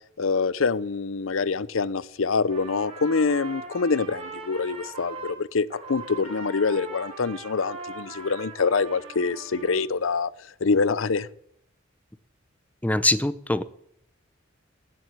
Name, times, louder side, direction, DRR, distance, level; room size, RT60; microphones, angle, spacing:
voice 1, 0.2-10.3 10.6-11.3, left 4 dB, 85° left, 19 dB, 0.7 m, -25 dB
Trumpet, 2.4-5.4 5.7-9.8, right 3 dB, 30° right, 4.9 m, -40 dB
voice 2, 12.8-13.6, left 2 dB, 10° left, 15 dB, 0.7 m, -23 dB
17.0 x 7.8 x 9.4 m, 0.72 s
head